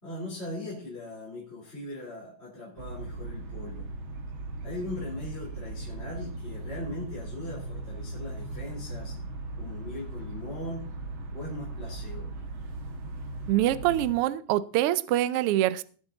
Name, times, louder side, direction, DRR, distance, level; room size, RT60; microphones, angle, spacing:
voice 1, 0.0-3.9 4.6-9.2 9.6-10.8 11.3-12.3, left 1 dB, 20° left, 3.8 m, -39 dB
sound 1, 2.8-14.2, right 2 dB, 50° right, 1.9 m, -38 dB
voice 2, 13.5-15.8, right 14 dB, 85° right, 1.2 m, -25 dB
18.0 x 7.5 x 4.0 m
omnidirectional pair, 3.3 m